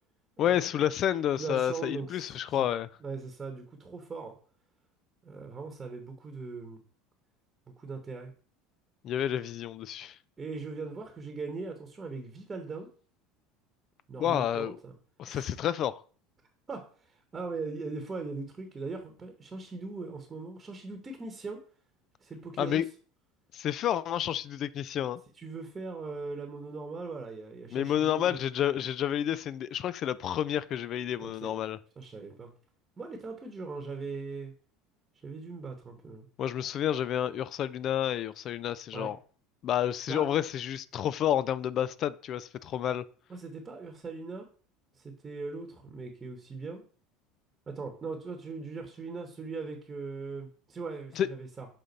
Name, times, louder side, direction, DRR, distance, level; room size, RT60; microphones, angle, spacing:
voice 1, 0.4-2.9 9.0-10.2 14.2-14.8 15.2-16.0 22.6-22.8 23.5-25.2 27.7-31.8 36.4-39.2 39.6-43.0 51.2-51.3, left 10 dB, 45° left, 0.3 m, -30 dB
voice 2, 1.4-2.3 3.0-4.4 5.2-6.8 7.8-8.3 10.4-12.9 14.1-14.9 15.3-15.5 16.7-21.6 22.2-22.8 25.4-28.4 31.2-31.5 32.0-32.5 33.0-34.5 35.2-36.3 38.9-39.1 40.1-40.3 43.3-44.5 44.9-46.8 47.7-51.7, right 4 dB, 20° right, 1.0 m, -40 dB
6.7 x 3.7 x 4.0 m
supercardioid pair, 130°, 0 cm